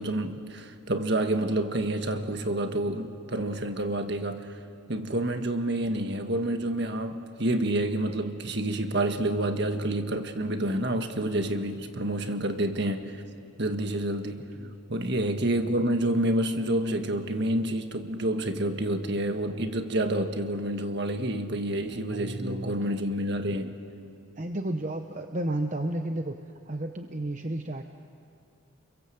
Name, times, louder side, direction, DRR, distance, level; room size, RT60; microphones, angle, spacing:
voice 1, 0.0-4.6 4.9-13.2 13.6-14.5 14.9-23.7, right 1 dB, 55° right, 6 dB, 1.7 m, -28 dB
voice 2, 21.8-22.7 24.4-26.4 26.7-27.8, right 1 dB, 35° right, 5 dB, 0.9 m, -32 dB
29.5 x 23.0 x 7.9 m, 2.5 s
head